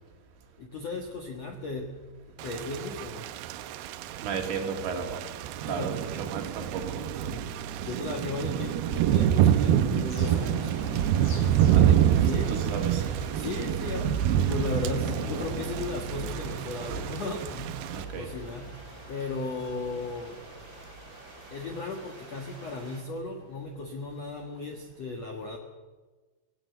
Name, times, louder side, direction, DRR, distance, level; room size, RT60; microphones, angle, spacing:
voice 1, 0.6-2.0 2.3-3.3 5.6-6.0 7.8-10.7 12.3-12.6 13.3-17.8 18.1-18.8 19.1-20.4 21.5-25.6, left 3 dB, 60° left, 2 dB, 1.7 m, -36 dB
Thunder / Rain, 2.4-18.1, right 10 dB, 85° right, 2.2 m, -27 dB
voice 2, 4.2-5.2 5.6-7.3 7.8-8.0 11.7-13.0 16.4-17.2 17.9-18.3, right 5 dB, 70° right, 3 dB, 4.6 m, -35 dB
Bird vocalization bird call bird song, 8.7-15.1, left 2 dB, 35° left, 3.7 m, -49 dB
sound 1, 10.1-23.0, right 1 dB, 20° right, 4.3 m, -43 dB
19.0 x 17.0 x 8.1 m, 1.3 s
omnidirectional pair, 5.4 m